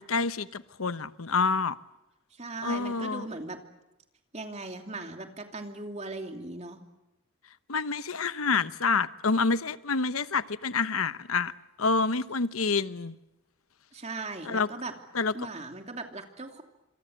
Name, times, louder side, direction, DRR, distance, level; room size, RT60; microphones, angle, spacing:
voice 1, 0.0-1.7 2.6-3.3 7.7-11.5 11.8-13.2 14.4-14.7 15.1-15.3, left 4 dB, 85° left, 1.0 m, -27 dB
voice 2, 2.4-3.6 4.3-6.8 13.9-14.9 15.3-16.6, right 3 dB, 30° right, 2.8 m, -38 dB
27.0 x 26.5 x 8.0 m
head